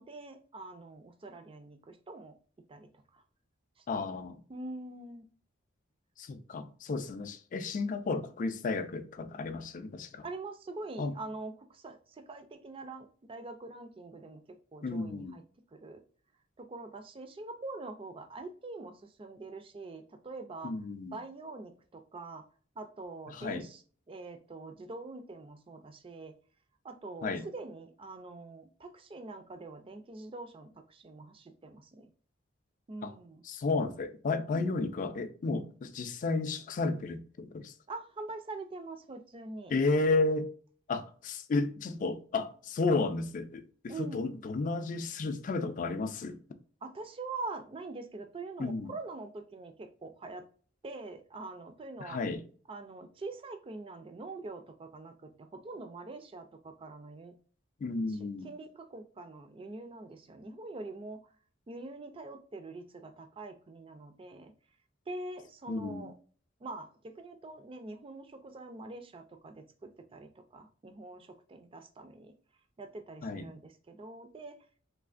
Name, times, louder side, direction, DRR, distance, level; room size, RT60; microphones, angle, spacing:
voice 1, 0.0-2.3 2.7-3.2 3.8-4.1 4.5-5.3 10.2-15.4 15.7-16.0 16.6-20.7 21.1-22.4 22.8-23.8 24.1-26.3 26.8-32.1 32.9-33.4 34.4-34.7 37.9-39.7 43.9-44.3 46.8-50.5 50.8-52.2 52.7-57.3 58.1-58.2 58.4-61.2 61.7-64.5 65.1-66.1 66.6-72.3 72.8-74.6, right 3 dB, 30° right, 0.4 m, -44 dB
voice 2, 3.9-4.4 6.2-10.3 11.0-11.1 14.8-15.4 20.6-21.2 23.3-23.7 27.2-27.5 33.0-33.1 33.4-37.7 39.7-40.5 40.9-43.6 44.0-46.4 48.6-48.9 52.0-52.4 57.8-58.5 65.7-66.1 73.2-73.5, left 3 dB, 40° left, 0.3 m, -32 dB
3.3 x 2.7 x 2.4 m
head